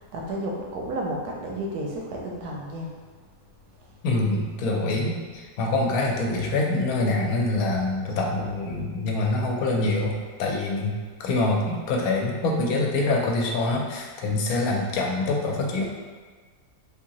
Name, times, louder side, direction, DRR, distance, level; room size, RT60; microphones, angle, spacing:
voice 1, 0.0-2.9, right 1 dB, 85° right, -1 dB, 1.2 m, -32 dB
voice 2, 4.0-10.1 10.4-10.9 11.2-15.9, left 2 dB, 75° left, 0 dB, 1.0 m, -25 dB
3.7 x 2.7 x 2.8 m, 1.5 s
omnidirectional pair, 1.6 m